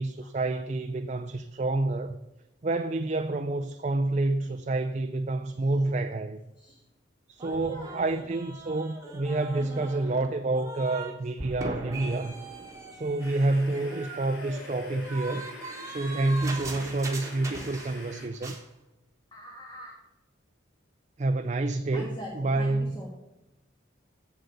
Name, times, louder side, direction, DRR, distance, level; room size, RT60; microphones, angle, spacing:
voice 1, 0.0-2.2 2.6-6.4 7.3-12.3 12.9-15.5 15.9-18.6 21.2-23.0, right 2 dB, 35° right, 0.4 m, -28 dB
voice 2, 7.4-8.2 19.3-19.9 21.9-23.1, equal, 25° left, 1.6 m, -42 dB
sound 1, 7.4-11.1 11.4-18.1 18.3-18.6, right 2 dB, 15° right, 1.4 m, -40 dB
sound 2, 13.2-18.3, left 1 dB, 80° left, 3.4 m, -46 dB
8.0 x 7.8 x 6.8 m
head